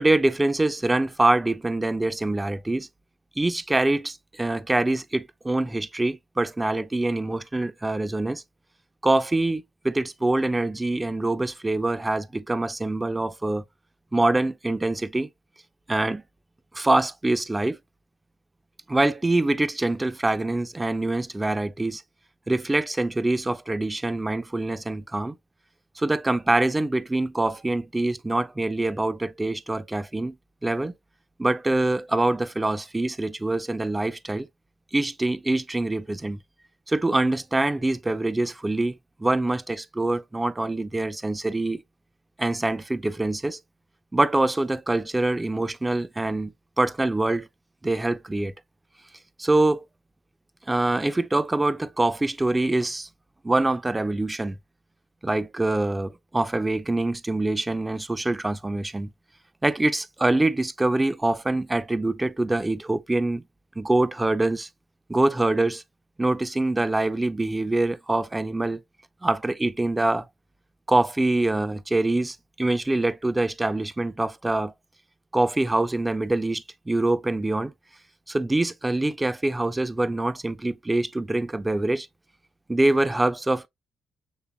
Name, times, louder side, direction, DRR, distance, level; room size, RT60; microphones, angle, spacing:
voice 1, 0.0-2.9 3.4-8.4 9.0-13.6 14.1-15.3 15.9-16.2 16.7-17.8 18.9-22.0 22.5-25.3 26.0-30.3 30.6-30.9 31.4-34.5 34.9-36.4 36.9-41.8 42.4-43.6 44.1-47.5 47.8-48.5 49.4-49.8 50.7-53.1 53.4-54.6 55.2-59.1 59.6-63.4 63.8-64.7 65.1-65.8 66.2-68.8 69.2-70.3 70.9-74.7 75.3-77.7 78.3-82.1 82.7-83.7, right 2 dB, 15° right, 0.5 m, -24 dB
7.2 x 3.3 x 2.2 m
cardioid pair, 90°, 0 cm